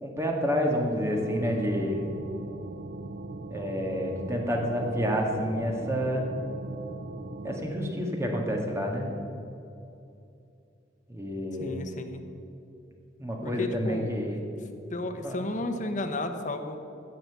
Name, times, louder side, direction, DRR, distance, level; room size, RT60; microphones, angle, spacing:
voice 1, 0.0-2.1 3.5-6.2 7.4-9.1 11.1-11.8 13.2-14.4 15.2-15.4, equal, 15° right, 1 dB, 1.8 m, -29 dB
sound 1, 1.1-7.6, right 2 dB, 55° right, 0.5 m, -40 dB
voice 2, 11.6-12.2 13.4-14.4 14.9-16.8, left 1 dB, 45° left, 6 dB, 1.0 m, -33 dB
16.0 x 6.0 x 8.3 m, 2.7 s
head